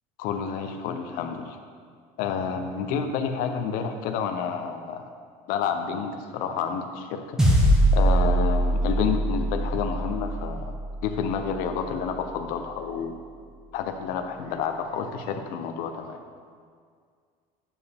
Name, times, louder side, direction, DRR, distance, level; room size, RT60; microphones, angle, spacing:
voice 1, 0.2-1.6 2.2-5.0 5.5-7.4 7.9-10.7 11.0-13.2 13.7-16.2, left 6 dB, 65° left, 6 dB, 0.6 m, -29 dB
sound 1, 7.4-12.0, right 1 dB, 5° right, 0.9 m, -23 dB
8.4 x 4.7 x 3.4 m, 2.1 s
cardioid pair, 150°, 16 cm